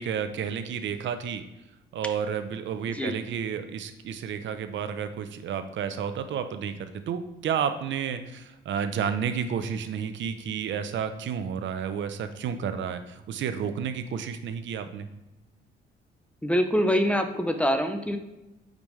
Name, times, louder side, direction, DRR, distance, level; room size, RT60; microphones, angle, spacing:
voice 1, 0.0-1.4 1.9-15.1, right 7 dB, 70° right, 9 dB, 0.7 m, -31 dB
voice 2, 16.4-18.2, equal, 5° left, 7 dB, 0.8 m, -24 dB
8.8 x 5.2 x 3.2 m, 1.0 s
cardioid pair, 90°, 20 cm